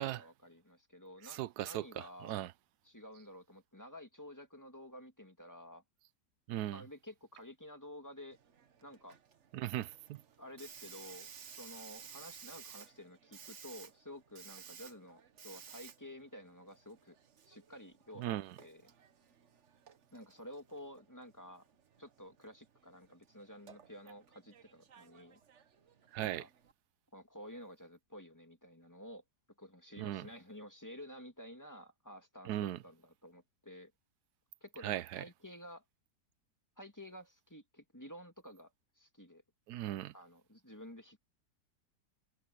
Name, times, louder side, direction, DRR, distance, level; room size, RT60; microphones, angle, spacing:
voice 1, 0.0-2.4 2.9-5.8 6.7-8.4 8.8-9.2 10.4-17.2 17.4-18.3 18.6-18.9 20.1-21.7 22.0-25.4 26.2-26.5 27.1-29.2 29.6-33.9 34.6-35.8 36.8-39.4 40.1-41.2, left 1 dB, 10° left, 2.1 m, -52 dB
voice 2, 1.2-2.5 6.5-6.8 9.5-10.2 18.2-18.6 26.1-26.4 30.0-30.3 32.4-32.8 34.8-35.2 39.7-40.1, right 13 dB, 70° right, 1.1 m, -38 dB
Hiss, 8.3-26.7, right 7 dB, 50° right, 1.2 m, -56 dB
omnidirectional pair, 1.9 m